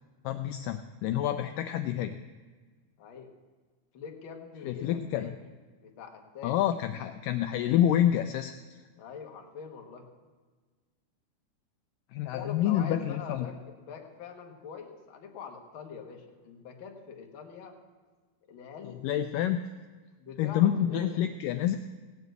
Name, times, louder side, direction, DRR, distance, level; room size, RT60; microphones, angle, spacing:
voice 1, 0.2-2.2 4.6-5.4 6.4-8.5 12.1-13.5 18.8-19.6 20.4-21.8, left 11 dB, 85° left, 9 dB, 1.9 m, -28 dB
voice 2, 3.0-3.3 3.9-5.5 5.8-6.6 9.0-10.1 12.3-17.7 18.5-19.0 20.2-21.0, left 7 dB, 55° left, 2 dB, 1.4 m, -44 dB
17.0 x 7.0 x 8.0 m, 1.4 s
omnidirectional pair, 4.4 m